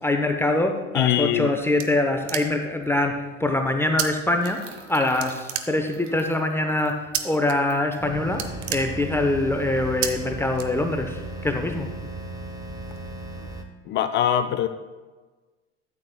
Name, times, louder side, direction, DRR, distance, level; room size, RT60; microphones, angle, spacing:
voice 1, 0.0-11.9, left 2 dB, 5° left, 4 dB, 0.7 m, -24 dB
voice 2, 0.9-1.5 13.9-14.7, left 11 dB, 30° left, 10 dB, 0.4 m, -22 dB
sound 1, 1.2-2.8 4.0-4.1 4.4-4.9 5.2-6.2 7.1-7.5 7.9-8.0 8.3-9.4 10.0-10.1 10.5-11.2, right 11 dB, 60° right, 0.9 m, -30 dB
sound 2, 2.5-2.6 2.8-3.0 4.4-8.1 8.6-8.7 9.0-9.3, right 3 dB, 35° right, 1.4 m, -46 dB
sound 3, 8.0-13.6, right 2 dB, 10° right, 1.1 m, -35 dB
13.0 x 8.5 x 2.2 m, 1.3 s
figure-of-eight pair, 75°, 37 cm